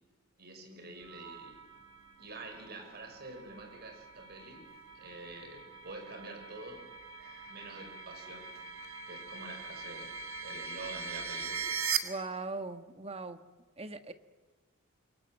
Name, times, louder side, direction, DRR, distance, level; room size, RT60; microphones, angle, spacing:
voice 1, 0.4-1.6 2.2-4.7 4.9-6.9 7.2-8.6 9.1-10.1 10.4-11.7, right 2 dB, 50° right, 5 dB, 5.8 m, -47 dB
sound 1, 1.0-12.0, right 6 dB, 85° right, 2.4 m, -41 dB
voice 2, 12.0-13.4 13.8-14.1, right 3 dB, 30° right, 9 dB, 1.5 m, -39 dB
28.0 x 23.0 x 8.9 m, 1.3 s
head